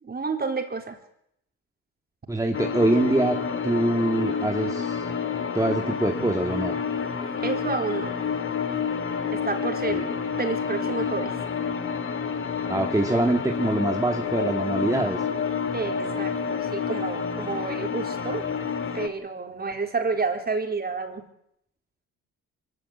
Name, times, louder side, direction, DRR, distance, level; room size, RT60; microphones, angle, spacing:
voice 1, 0.0-1.0 7.4-8.2 9.3-10.1 10.4-11.4 15.7-18.4 18.9-21.3, right 4 dB, 30° right, 4 dB, 4.3 m, -30 dB
voice 2, 2.3-3.4 3.6-5.1 5.5-6.7 9.9-10.1 12.7-15.3, right 1 dB, 10° right, 2 dB, 2.1 m, -24 dB
sound 1, 2.5-19.1, left 6 dB, 45° left, 2.2 m, -29 dB
23.5 x 16.0 x 9.8 m, 0.76 s
cardioid pair, 90°, 30 cm